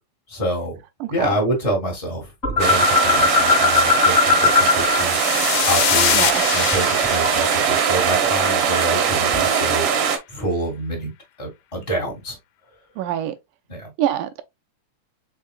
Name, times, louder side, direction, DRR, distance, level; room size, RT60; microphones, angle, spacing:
voice 1, 0.3-0.8 1.1-2.3 2.6-6.3 6.5-9.9 10.3-11.1 11.4-12.4 13.7-13.9, right 1 dB, 60° left, 0.3 m, -27 dB
voice 2, 1.0-1.4 6.1-6.4 13.0-13.4 14.0-14.4, right 11 dB, 85° right, 2.1 m, -25 dB
sound 1, 2.4-5.0 5.3-7.6, left 5 dB, 40° left, 0.9 m, -20 dB
sound 2, 2.6-10.2, right 7 dB, 65° right, 1.5 m, -21 dB
sound 3, 4.3-8.8, left 12 dB, 80° left, 2.1 m, -25 dB
5.6 x 3.6 x 2.3 m
omnidirectional pair, 3.6 m